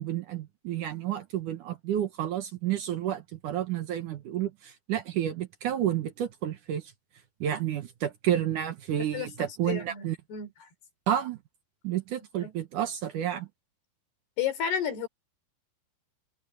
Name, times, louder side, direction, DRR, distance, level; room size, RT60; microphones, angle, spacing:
voice 1, 0.0-6.8 7.4-10.2 11.1-11.4 11.8-13.5, right 11 dB, 65° right, 2.3 m, -30 dB
voice 2, 9.1-10.7 12.4-12.5 14.4-15.1, left 8 dB, 80° left, 6.0 m, -32 dB
omnidirectional pair, 4.6 m